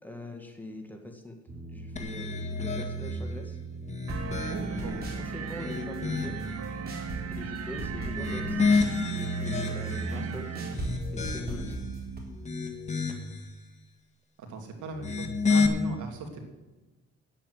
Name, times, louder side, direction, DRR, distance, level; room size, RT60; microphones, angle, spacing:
voice 1, 0.0-1.4 1.7-3.6 4.3-4.4 4.7-6.4 7.2-8.6 9.1-10.5 11.1-11.9, left 1 dB, 5° left, 3 dB, 2.0 m, -42 dB
sound 1, 1.5-12.2, right 2 dB, 30° right, 3.9 m, -38 dB
sound 2, 2.0-3.3 3.8-4.9 5.4-6.5 8.0-10.2 10.7-11.8 12.3-13.4 14.9-15.7, left 4 dB, 25° left, 1.8 m, -30 dB
sound 3, 4.1-10.7, right 6 dB, 55° right, 1.6 m, -38 dB
voice 2, 4.5-5.1 10.1-10.4 14.4-16.4, right 2 dB, 75° right, 4 dB, 2.6 m, -38 dB
10.0 x 8.9 x 7.9 m, 1.1 s
cardioid pair, 90°, 30 cm